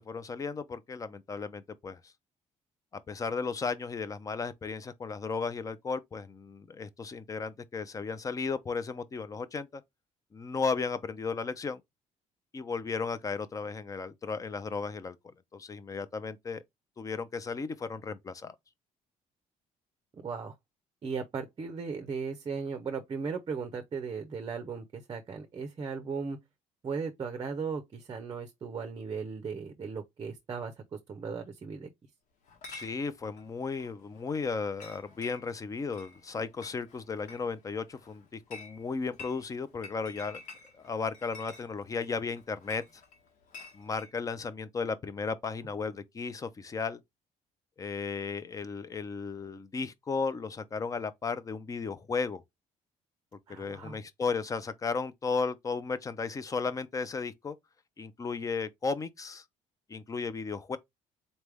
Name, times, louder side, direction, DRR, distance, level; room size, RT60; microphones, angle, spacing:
voice 1, 0.0-2.0 3.1-9.8 10.3-11.8 12.5-15.2 15.5-16.6 17.0-18.5 32.7-40.4 40.8-42.8 43.7-47.0 47.8-52.4 53.6-57.6 58.0-59.4 59.9-60.8, left 4 dB, 25° left, 0.6 m, -35 dB
voice 2, 20.1-20.5 21.0-26.4 26.8-31.9 53.5-54.0, right 5 dB, 30° right, 0.6 m, -37 dB
Chatter / Chink clink, 32.4-44.1, left 4 dB, 70° left, 1.4 m, -51 dB
4.1 x 3.3 x 3.4 m
cardioid pair, 135°, 14 cm